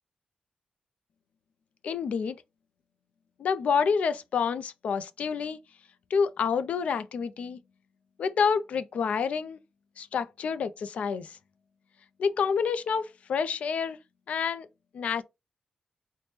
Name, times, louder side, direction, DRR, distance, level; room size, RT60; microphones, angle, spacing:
voice 1, 1.8-2.4 3.4-5.6 6.1-7.6 8.2-9.6 10.0-11.4 12.2-14.0 14.3-14.7 14.9-15.2, left 6 dB, 90° left, 0.4 m, -28 dB
4.2 x 2.1 x 3.1 m
wide cardioid pair, 180°, 2 cm